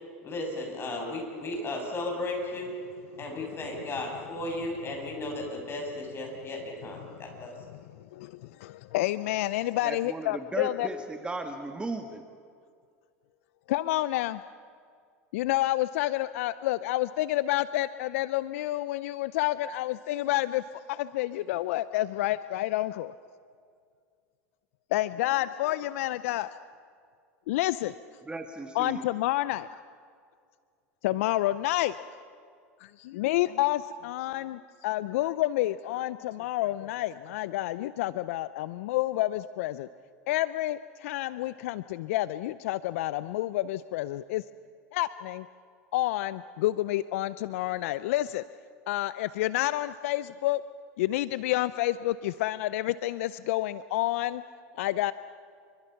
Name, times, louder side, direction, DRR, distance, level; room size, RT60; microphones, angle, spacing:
voice 1, 0.2-2.7 3.2-7.5, left 2 dB, 30° left, 2 dB, 7.6 m, -35 dB
voice 2, 8.1-10.9 13.7-14.4 15.3-23.1 24.9-26.6 27.5-27.9 28.7-29.8 31.0-32.0 32.8-39.9 40.3-44.4 44.9-45.5 45.9-48.4 48.9-50.6 51.0-54.4 54.8-55.1, left 16 dB, 70° left, 16 dB, 0.6 m, -29 dB
voice 3, 9.8-12.2 28.3-29.1, right 2 dB, 15° right, 6 dB, 1.6 m, -36 dB
28.5 x 25.0 x 5.9 m, 2.2 s
hypercardioid pair, 95°, 8 cm